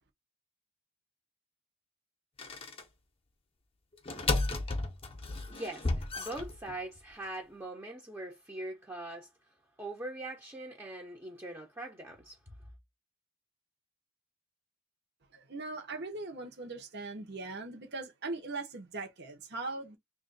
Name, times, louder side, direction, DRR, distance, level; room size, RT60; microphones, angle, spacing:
sound 1, 2.4-2.8 3.9-7.0, left 2 dB, 25° left, 0.7 m, -33 dB
voice 1, 5.5-9.3 9.8-12.5, right 1 dB, 10° right, 0.7 m, -42 dB
voice 2, 15.3-20.0, right 3 dB, 55° right, 0.9 m, -40 dB
3.0 x 2.5 x 4.0 m
head